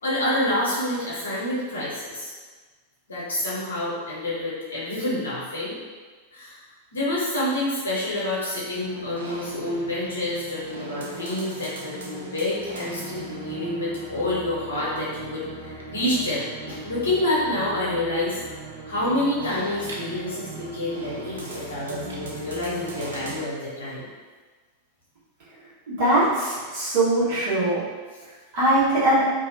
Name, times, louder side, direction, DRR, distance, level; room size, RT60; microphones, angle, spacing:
voice 1, 0.0-2.3 3.1-5.8 6.3-6.6 6.9-18.4 18.8-24.0, left 1 dB, 70° left, -7 dB, 0.9 m, -28 dB
sound 1, 8.7-23.4, right 2 dB, 70° right, 0.4 m, -38 dB
voice 2, 25.9-27.8 28.5-29.2, right 1 dB, 50° right, -9 dB, 1.2 m, -21 dB
2.6 x 2.3 x 2.6 m, 1.4 s
figure-of-eight pair, 90°, 0 cm